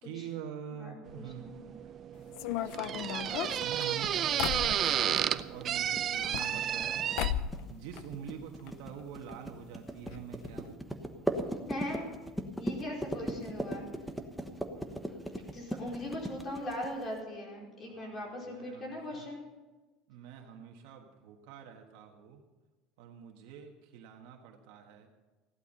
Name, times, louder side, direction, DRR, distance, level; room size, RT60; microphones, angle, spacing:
voice 1, 0.0-1.5 1.8-1.9 2.6-7.0 7.7-10.8 14.7-15.2 17.9-19.3 20.1-22.4 23.0-25.1, right 8 dB, 75° right, 2 dB, 1.5 m, -46 dB
voice 2, 0.7-1.6 6.3-6.6 11.7-12.1 12.6-13.8 15.5-19.4, left 1 dB, 30° left, -2 dB, 4.6 m, -40 dB
sound 1, 1.1-7.3, right 10 dB, 35° right, 0.5 m, -32 dB
sound 2, 2.3-5.3 6.1-6.9 7.2-7.6 7.9-8.7 9.0-9.1 9.3-9.4 10.1-10.2 10.5-10.7, left 11 dB, 65° left, 0.7 m, -35 dB
sound 3, 3.4-17.2, equal, ahead, 1.2 m, -38 dB
15.5 x 11.5 x 5.5 m, 1.2 s
cardioid pair, 150°, 0 cm